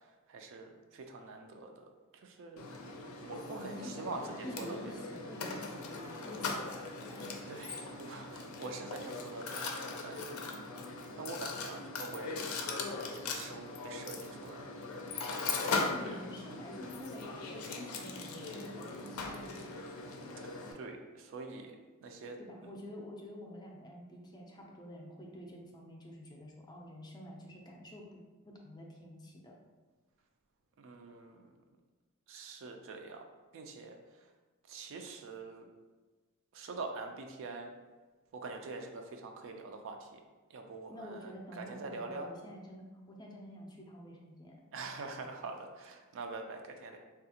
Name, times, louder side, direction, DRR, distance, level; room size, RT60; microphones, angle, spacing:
voice 1, 0.0-2.7 3.2-5.0 7.5-10.4 11.2-12.5 12.9-14.6 16.0-16.1 20.4-21.8 22.0-22.7 30.8-31.5 32.3-33.2 33.5-34.3 34.7-35.7 36.5-37.7 38.3-40.2 40.5-42.3 44.7-47.0, right 3 dB, 65° right, 4 dB, 0.4 m, -45 dB
Mechanisms, 2.6-20.7, left 3 dB, 75° left, 0.4 m, -40 dB
voice 2, 3.5-7.5 15.8-19.9 22.4-29.5 40.9-44.6, equal, 20° left, -1 dB, 0.4 m, -48 dB
3.4 x 2.3 x 2.8 m, 1.3 s
head